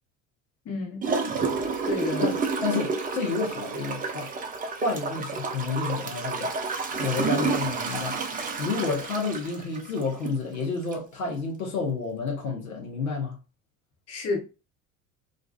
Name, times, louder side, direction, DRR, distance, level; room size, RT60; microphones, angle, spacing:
voice 1, 0.6-1.3 1.8-2.3 14.1-14.4, left 3 dB, 35° left, 1.0 m, -31 dB
Gurgling / Toilet flush, 1.0-10.4 10.9-11.0, right 4 dB, 20° right, 0.6 m, -30 dB
voice 2, 2.2-4.3 4.8-6.5 7.0-8.2 8.6-13.4, left 4 dB, 75° left, 0.8 m, -30 dB
2.5 x 2.3 x 2.2 m
figure-of-eight pair, 60°, 42 cm